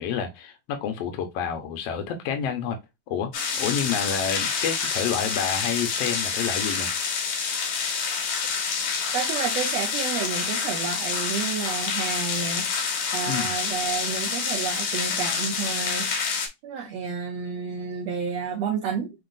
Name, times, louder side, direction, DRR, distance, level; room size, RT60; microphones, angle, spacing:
voice 1, 0.0-2.8 3.1-3.3 3.6-6.9 13.3-13.5, left 7 dB, 65° left, 1.7 m, -29 dB
sound 1, 3.3-16.5, left 5 dB, 85° left, 3.3 m, -27 dB
voice 2, 9.1-12.6 13.1-16.1 16.6-19.1, right 6 dB, 75° right, 1.6 m, -30 dB
5.9 x 3.1 x 2.5 m
omnidirectional pair, 3.9 m